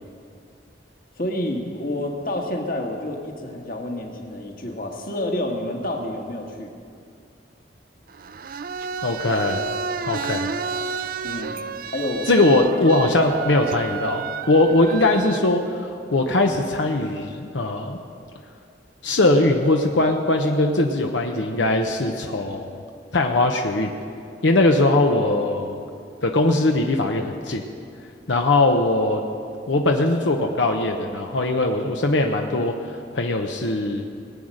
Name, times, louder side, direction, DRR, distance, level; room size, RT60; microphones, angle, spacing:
voice 1, 1.2-6.7 11.2-11.6 11.9-12.3, left 1 dB, 50° left, 1 dB, 1.7 m, -29 dB
sound 1, 8.1-15.4, right 6 dB, 50° right, 0.4 m, -31 dB
voice 2, 9.0-9.6 10.1-10.5 12.3-18.0 19.0-22.7 23.1-23.9 24.4-25.8 26.2-27.6 28.3-29.2 29.7-32.8 33.1-34.0, left 2 dB, 85° left, 3 dB, 0.9 m, -20 dB
19.5 x 8.9 x 6.5 m, 2.4 s
head